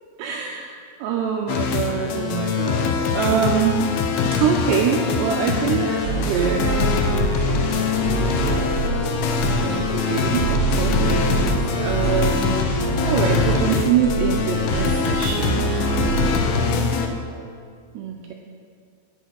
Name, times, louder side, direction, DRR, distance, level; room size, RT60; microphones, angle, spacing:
voice 1, 0.2-3.8 4.3-5.9 6.2-6.9 9.6-15.8 17.9-18.3, right 7 dB, 85° right, 1 dB, 2.5 m, -24 dB
sound 1, 1.5-17.1, left 6 dB, 85° left, 2.3 m, -23 dB
voice 2, 4.7-5.1 5.6-8.5 16.2-17.0, left 3 dB, 60° left, -5 dB, 3.5 m, -34 dB
sound 2, 6.0-16.7, right 3 dB, 30° right, 3.2 m, -25 dB
9.0 x 7.9 x 6.3 m, 2.2 s
omnidirectional pair, 5.5 m